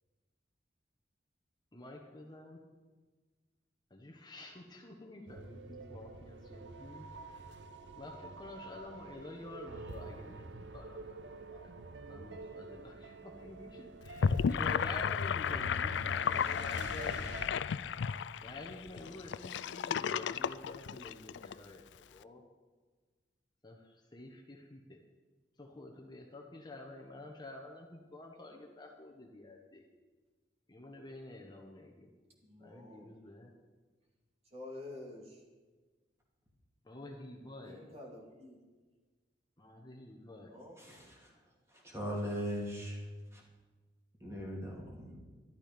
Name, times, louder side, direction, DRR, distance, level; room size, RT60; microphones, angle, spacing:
voice 1, 1.7-2.6 3.9-7.4 7.9-11.7 12.1-17.3 18.4-22.4 23.6-25.0 25.6-29.8 30.7-32.1 32.6-33.5 36.8-37.8 39.6-40.5, left 2 dB, 25° left, 1 dB, 1.2 m, -49 dB
sound 1, 5.3-17.5, right 3 dB, 90° right, 0.8 m, -48 dB
Gurgling / Sink (filling or washing), 14.0-21.5, left 7 dB, 80° left, 0.4 m, -33 dB
voice 2, 32.5-33.1 34.5-35.3 37.6-38.6 40.5-40.8, left 2 dB, 35° right, -1 dB, 2.6 m, -48 dB
voice 3, 40.8-41.3 41.8-43.0 43.3-43.4 44.2-45.2, equal, 15° right, -2 dB, 2.9 m, -39 dB
12.5 x 12.0 x 5.2 m, 1.3 s
head